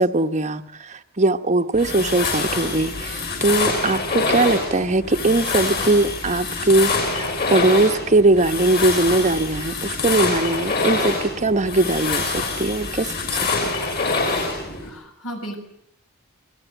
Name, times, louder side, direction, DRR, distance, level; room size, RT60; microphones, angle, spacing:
voice 1, 0.0-13.7, right 2 dB, 30° right, 1.0 m, -20 dB
sound 1, 1.7-14.9, left 3 dB, 45° left, 6.7 m, -25 dB
voice 2, 14.7-15.6, right 1 dB, 75° left, 6.2 m, -35 dB
28.5 x 19.5 x 9.1 m
head